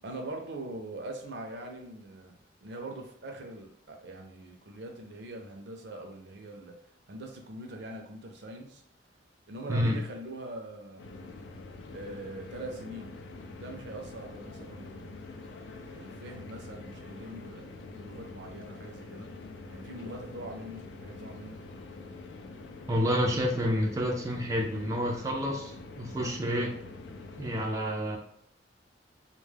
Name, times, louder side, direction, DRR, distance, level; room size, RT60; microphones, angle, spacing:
voice 1, 0.0-6.7 7.1-8.8 9.5-11.0 11.9-13.1 13.5-17.7 17.9-19.3 19.7-21.6, right 1 dB, 70° right, 2 dB, 0.5 m, -42 dB
sound 1, 11.0-27.6, left 3 dB, 80° left, 0.4 m, -45 dB
voice 2, 22.9-26.8 27.4-28.2, equal, 20° right, -1 dB, 0.3 m, -29 dB
2.2 x 2.1 x 3.2 m, 0.69 s
head